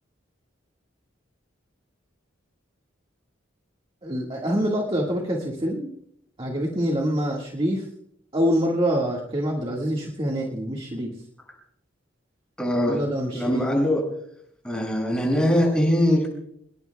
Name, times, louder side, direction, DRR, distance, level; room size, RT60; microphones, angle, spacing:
voice 1, 4.0-5.9 6.4-7.9 8.3-11.1 12.8-13.7, equal, 30° right, -2 dB, 1.8 m, -25 dB
voice 2, 12.6-13.0 13.3-14.0 14.6-16.3, left 1 dB, 5° left, -1 dB, 6.6 m, -22 dB
26.0 x 20.5 x 2.3 m, 0.70 s
head